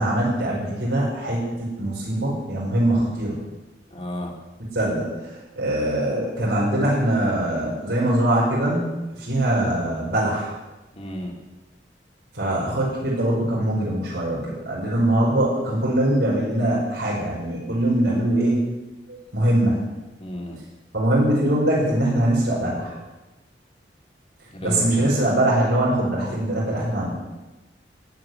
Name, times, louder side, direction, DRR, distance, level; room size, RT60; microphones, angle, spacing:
voice 1, 0.0-3.4 4.7-8.9 9.2-10.5 12.3-18.7 19.1-19.8 20.9-23.0 24.6-27.1, right 1 dB, 80° right, -6 dB, 5.5 m, -22 dB
voice 2, 3.9-4.3 11.0-11.3 20.2-20.6 24.5-25.1, left 1 dB, 35° left, 1 dB, 2.5 m, -32 dB
16.5 x 5.9 x 9.5 m, 1.1 s
head